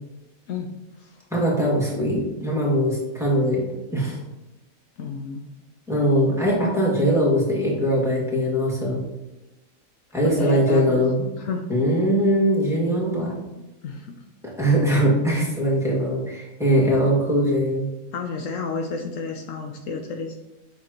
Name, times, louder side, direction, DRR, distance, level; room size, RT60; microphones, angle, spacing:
voice 1, 1.3-3.6 3.9-4.2 5.9-9.0 10.1-11.3 11.7-13.4 14.4-17.9, equal, ahead, -5 dB, 2.0 m, -21 dB
voice 2, 5.0-5.4 10.2-11.0 11.3-11.6 13.8-14.1 18.1-20.4, left 4 dB, 70° left, 4 dB, 1.0 m, -31 dB
7.9 x 5.8 x 3.0 m, 1.0 s
omnidirectional pair, 1.4 m